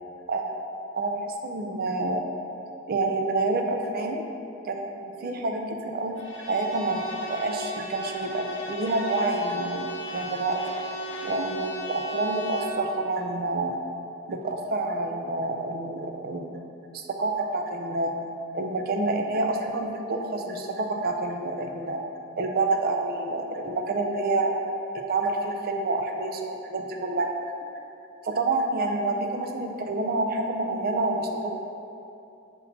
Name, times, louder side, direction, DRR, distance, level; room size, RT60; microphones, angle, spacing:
voice 1, 0.9-2.2 2.9-4.2 4.6-6.2 6.5-7.0 7.3-9.9 10.1-10.6 11.2-13.8 14.3-16.5 16.9-18.1 18.5-22.0 22.4-24.6 25.1-27.3 28.2-31.5, right 2 dB, 50° right, 3 dB, 0.5 m, -28 dB
Bowed string instrument, 6.2-12.8, right 1 dB, 70° left, 0.7 m, -37 dB
5.4 x 4.2 x 4.1 m, 2.7 s
head